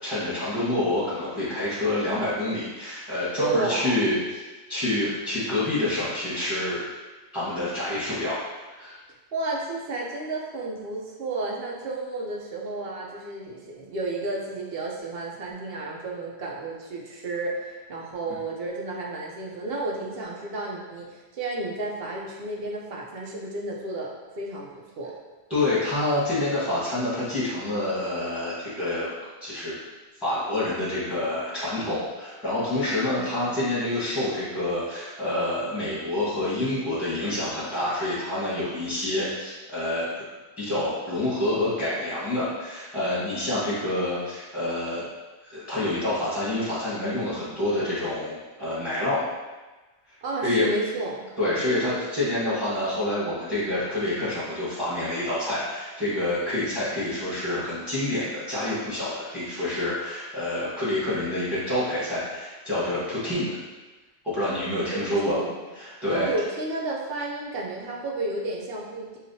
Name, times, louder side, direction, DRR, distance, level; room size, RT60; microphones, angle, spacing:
voice 1, 0.0-4.4 4.7-6.8 7.3-8.4 8.7-9.0 25.5-29.1 29.4-29.8 30.2-40.1 40.6-45.1 45.4-49.2 50.4-50.7 51.4-63.6 64.2-65.4 65.8-66.3, left 1 dB, ahead, -10 dB, 1.3 m, -27 dB
voice 2, 3.3-4.0 9.3-25.2 33.1-33.6 50.2-51.8 64.9-65.6 66.1-69.2, right 2 dB, 65° right, -2 dB, 0.9 m, -32 dB
5.6 x 2.4 x 2.7 m, 1.2 s
omnidirectional pair, 1.1 m